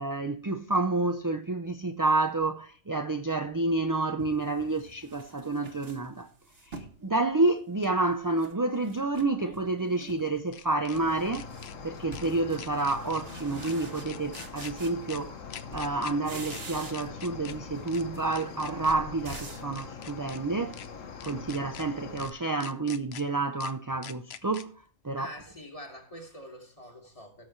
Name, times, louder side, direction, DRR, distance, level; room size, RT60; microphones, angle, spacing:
voice 1, 0.0-6.3 6.7-11.5 11.8-15.4 15.7-20.8 21.2-24.7 25.0-25.3, right 2 dB, 25° right, 0.5 m, -29 dB
sound 1, 3.5-3.6 4.2-7.0 7.4-8.5 8.8-9.7 10.0-10.4 10.7-15.4 15.7-17.2 17.5-19.7, right 3 dB, 50° right, 1.6 m, -47 dB
sound 2, 6.7-6.8 9.2-11.0 11.3-11.7 12.1-12.3 12.6-13.2 13.6-13.7 14.1-14.7 15.1-15.2 15.5-16.1 16.5-16.6 16.9-17.5 17.9-18.0 18.3-18.9 19.3-19.4 19.7-20.4 20.7-20.9 21.2-21.8 22.2-22.3 22.6-23.2 23.6-23.7 24.0-24.6, left 8 dB, 60° left, 0.9 m, -45 dB
Cricket, 10.9-22.3, left 5 dB, 80° left, 1.5 m, -43 dB
voice 2, 25.2-27.5, equal, 25° left, 2.8 m, -45 dB
17.5 x 6.6 x 3.2 m
omnidirectional pair, 1.3 m